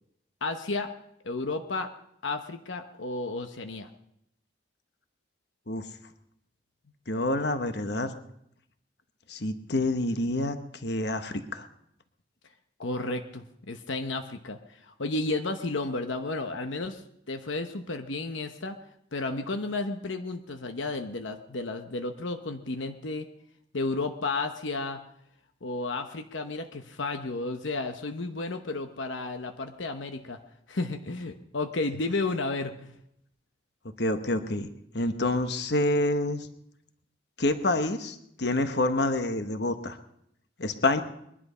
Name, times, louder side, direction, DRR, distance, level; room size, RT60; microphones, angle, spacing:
voice 1, 0.4-0.9 1.2-1.9 2.2-3.9 12.8-17.0 17.3-18.8 19.1-23.3 23.7-25.0 25.6-30.4 30.7-33.0, left 3 dB, 80° left, 6 dB, 1.0 m, -32 dB
voice 2, 7.1-8.1 9.3-10.6 10.8-11.6 34.0-34.7 34.9-36.5 37.4-40.0 40.6-41.0, left 2 dB, 60° left, 8 dB, 1.2 m, -27 dB
21.5 x 11.5 x 5.6 m, 0.75 s
head